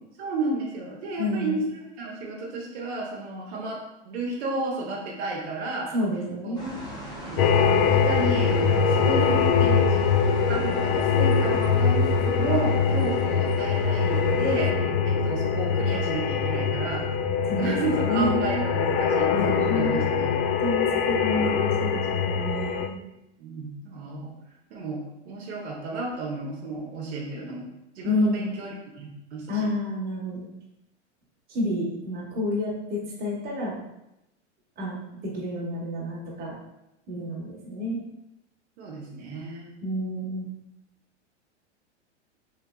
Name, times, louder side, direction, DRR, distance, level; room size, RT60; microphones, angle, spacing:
voice 1, 0.2-5.9 6.4-6.6 7.2-10.0 10.5-17.1 17.5-20.3 23.4-24.3 24.7-27.7 27.9-29.7 38.8-39.8, right 2 dB, 65° right, -2 dB, 1.0 m, -32 dB
voice 2, 1.2-1.6 5.9-6.7 17.5-18.7 19.3-20.0 20.6-22.9 28.0-28.4 29.5-30.5 31.5-33.7 34.8-35.0 35.2-36.5 37.1-38.0 39.8-40.5, left 1 dB, 25° right, -4 dB, 1.2 m, -29 dB
sound 1, 6.5-14.7, equal, 10° left, 1.0 m, -40 dB
sound 2, 7.4-22.9, left 6 dB, 55° left, 0.5 m, -23 dB
3.6 x 3.3 x 2.3 m, 0.88 s
hypercardioid pair, 110°, 35 cm